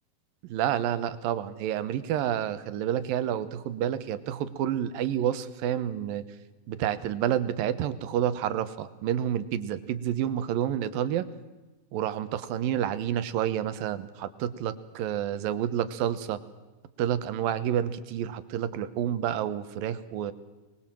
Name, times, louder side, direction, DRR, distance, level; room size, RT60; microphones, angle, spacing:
voice 1, 0.4-6.2 6.7-11.3 11.9-16.4 17.0-20.3, right 10 dB, 85° right, 13 dB, 2.9 m, -29 dB
25.0 x 21.0 x 7.6 m, 1.1 s
omnidirectional pair, 4.0 m